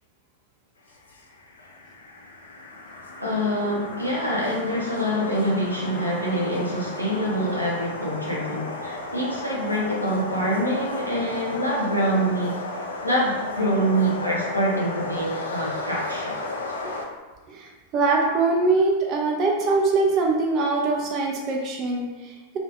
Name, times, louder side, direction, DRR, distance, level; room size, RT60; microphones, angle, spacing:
sound 1, 0.9-17.1, left 2 dB, 70° left, 0.3 m, -34 dB
voice 1, 3.2-12.5 13.0-16.4, equal, 90° right, -5 dB, 0.6 m, -25 dB
voice 2, 17.5-22.6, right 3 dB, 35° right, 0 dB, 0.3 m, -23 dB
2.2 x 2.1 x 2.8 m, 1.2 s
figure-of-eight pair, 90°, 0 cm